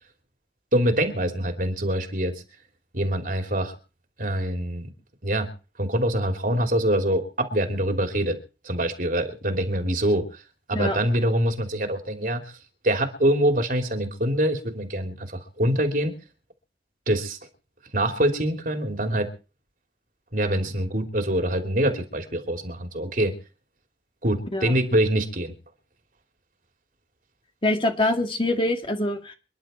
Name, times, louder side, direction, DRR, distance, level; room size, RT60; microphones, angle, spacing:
voice 1, 0.7-2.3 2.9-3.7 4.2-4.9 5.2-5.5 5.8-8.4 8.6-10.3 10.7-12.4 12.8-16.2 17.1-17.4 17.9-19.3 20.3-23.3 24.2-25.5, right 1 dB, 45° right, 5 dB, 3.2 m, -24 dB
voice 2, 27.6-29.3, left 1 dB, 30° left, 4 dB, 2.2 m, -24 dB
28.0 x 11.0 x 4.5 m, 0.35 s
head